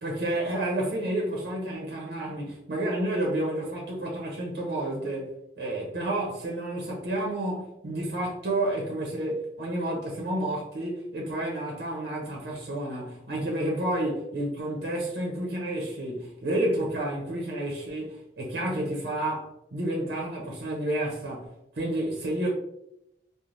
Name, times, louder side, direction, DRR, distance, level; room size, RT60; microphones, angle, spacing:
voice 1, 0.0-21.4 21.7-22.5, right 1 dB, 65° right, -3 dB, 0.6 m, -30 dB
3.1 x 2.0 x 2.5 m, 0.79 s
head